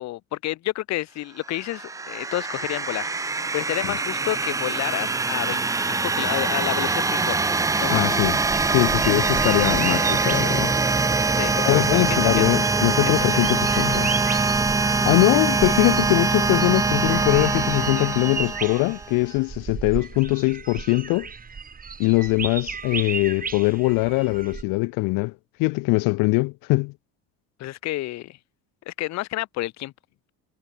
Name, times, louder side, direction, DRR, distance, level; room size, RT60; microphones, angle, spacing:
voice 1, 0.0-8.2 11.3-12.5 13.3-13.4 27.6-28.4 28.9-29.9, left 16 dB, 55° left, 0.8 m, -30 dB
sound 1, 1.5-19.1, right 3 dB, 10° right, 0.4 m, -23 dB
sound 2, 7.6-24.6, right 5 dB, 25° right, 4.0 m, -35 dB
voice 2, 7.9-8.4 8.7-10.7 11.5-14.1 15.0-21.3 22.0-25.3 25.6-26.9, left 26 dB, 80° left, 0.8 m, -22 dB
cardioid pair, 130°, 34 cm